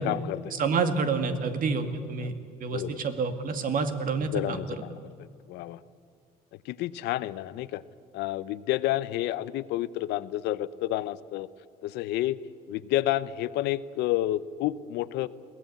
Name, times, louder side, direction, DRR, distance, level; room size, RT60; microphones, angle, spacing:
voice 1, 0.0-0.6 2.2-2.4 2.7-3.0 4.2-5.0 5.5-5.8 6.7-7.8 8.1-11.5 11.8-12.4 12.7-15.3, left 14 dB, 85° left, 16 dB, 0.7 m, -30 dB
voice 2, 0.6-2.3 2.6-4.6, right 4 dB, 55° right, 8 dB, 2.1 m, -28 dB
22.0 x 17.0 x 8.5 m, 2.4 s
cardioid pair, 110°, 17 cm